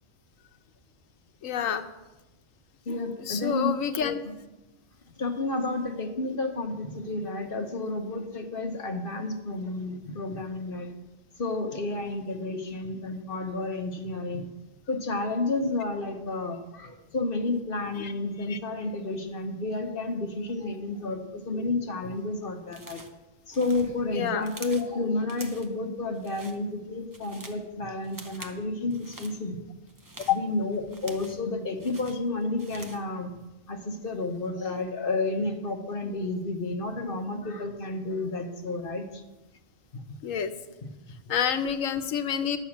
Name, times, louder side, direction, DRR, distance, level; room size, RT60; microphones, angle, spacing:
voice 1, 1.4-1.8 3.2-4.2 18.0-18.1 18.5-18.6 24.1-24.4 30.3-30.4 40.2-40.5 41.3-42.6, left 8 dB, 90° left, 8 dB, 1.2 m, -28 dB
voice 2, 2.8-3.7 5.2-10.9 11.4-14.5 14.9-23.0 23.5-29.6 30.3-33.3 33.7-39.2 39.9-40.0 40.8-40.9 41.2-41.3, left 2 dB, 45° left, 4 dB, 1.3 m, -31 dB
sound 1, 22.7-23.2 23.5-24.9 25.3-25.8 26.1-26.6 26.9-27.6 28.0-28.6 28.9-29.4 29.9-31.5 31.8-33.1, right 1 dB, 20° right, 0.8 m, -46 dB
11.5 x 6.4 x 7.3 m, 1.0 s
omnidirectional pair, 1.3 m